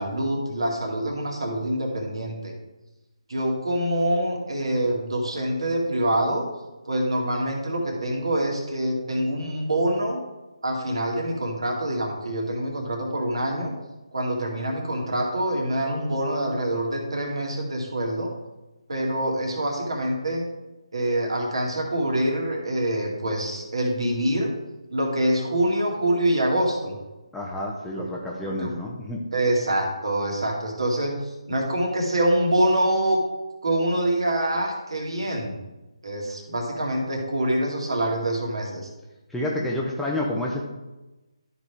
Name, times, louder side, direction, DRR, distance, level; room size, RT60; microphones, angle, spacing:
voice 1, 0.0-2.5 3.3-6.5 6.9-10.2 10.6-13.7 14.1-18.3 18.9-20.4 20.9-24.5 24.9-27.0 28.4-28.8 29.3-33.2 33.6-35.5 36.0-38.9, right 1 dB, 60° right, 0 dB, 2.3 m, -25 dB
voice 2, 27.3-29.3 39.3-40.6, left 1 dB, 5° left, -3 dB, 0.7 m, -29 dB
12.5 x 5.1 x 3.5 m, 1.1 s
figure-of-eight pair, 150°, 3 cm